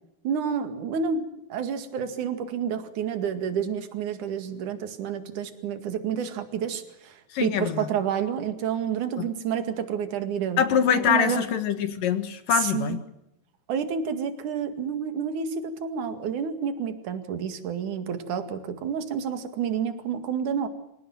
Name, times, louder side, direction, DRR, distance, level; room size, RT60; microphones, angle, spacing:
voice 1, 0.2-7.1 7.4-10.6 11.1-11.4 12.6-13.0 13.7-20.7, right 7 dB, 55° right, 9 dB, 3.3 m, -29 dB
voice 2, 7.3-7.9 9.2-9.3 10.6-13.0, left 8 dB, 65° left, 10 dB, 3.0 m, -24 dB
27.5 x 17.0 x 7.9 m, 0.86 s
omnidirectional pair, 4.4 m